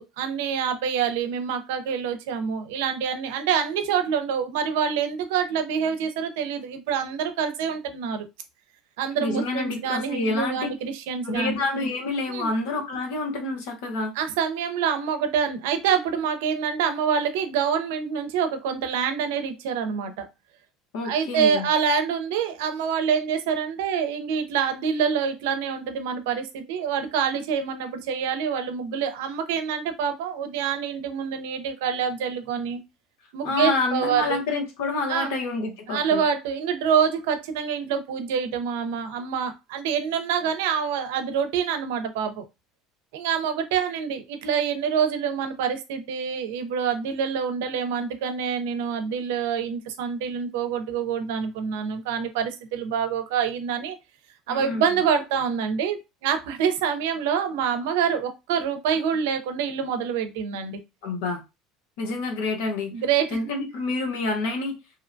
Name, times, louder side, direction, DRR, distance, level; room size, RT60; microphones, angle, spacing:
voice 1, 0.0-8.3 9.0-11.6 12.3-12.5 14.2-20.3 21.0-32.8 33.3-34.4 35.1-35.4 35.9-42.4 43.1-54.0 54.5-60.8 62.9-63.4, right 7 dB, 85° right, 8 dB, 0.5 m, -26 dB
voice 2, 9.2-10.7 11.2-14.1 20.9-21.7 33.4-36.2 54.5-55.0 61.0-61.4 62.0-62.9 63.3-64.8, left 3 dB, 80° left, 3 dB, 0.9 m, -28 dB
2.6 x 2.1 x 2.5 m, 0.25 s
supercardioid pair, 100°, 0 cm